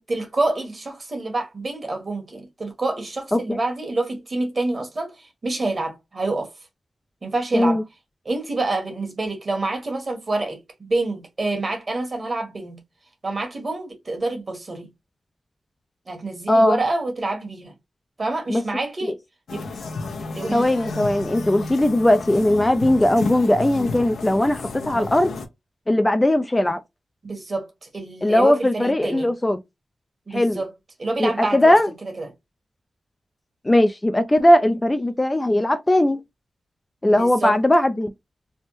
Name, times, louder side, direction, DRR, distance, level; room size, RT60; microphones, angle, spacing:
voice 1, 0.1-6.5 7.2-7.8 8.2-12.8 13.2-14.9 16.1-17.7 18.2-19.2 19.5-19.7 20.3-20.7 27.2-29.3 30.3-30.7 31.0-31.7 32.2-32.3 37.1-37.6, right 2 dB, 40° right, 1.4 m, -27 dB
voice 2, 16.5-16.8 18.5-18.6 20.5-25.3 25.9-26.8 28.2-29.6 30.3-30.6 31.2-31.9 33.6-36.2 37.0-38.1, left 1 dB, 20° left, 0.3 m, -19 dB
sound 1, 19.5-25.5, left 3 dB, 85° left, 0.7 m, -32 dB
3.4 x 2.0 x 2.9 m
cardioid pair, 75°, 0 cm